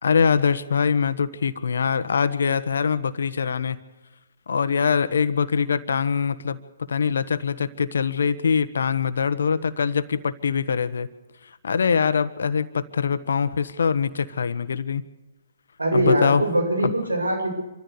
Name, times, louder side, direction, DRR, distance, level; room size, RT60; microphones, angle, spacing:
voice 1, 0.0-3.8 4.5-6.6 6.9-11.1 11.6-15.1 15.9-16.4 16.8-16.9, left 6 dB, 70° left, 13 dB, 1.3 m, -23 dB
voice 2, 15.8-17.5, right 1 dB, 90° right, 3 dB, 7.0 m, -22 dB
26.5 x 14.0 x 6.8 m, 1.1 s
figure-of-eight pair, 130°, 0 cm